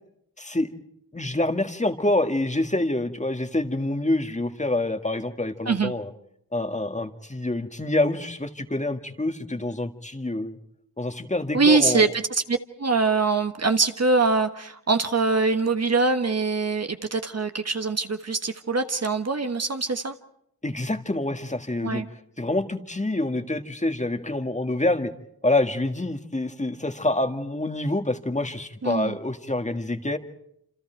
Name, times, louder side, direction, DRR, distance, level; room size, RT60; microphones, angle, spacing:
voice 1, 0.4-0.7 1.1-6.1 6.5-10.6 11.0-12.1 20.6-22.0 22.4-25.1 25.4-30.2, left 2 dB, 20° left, 7 dB, 1.9 m, -26 dB
voice 2, 11.5-20.1 21.8-22.1 28.8-29.2, right 4 dB, 40° right, 7 dB, 1.4 m, -23 dB
27.5 x 26.5 x 4.6 m, 0.73 s
cardioid pair, 50°, 38 cm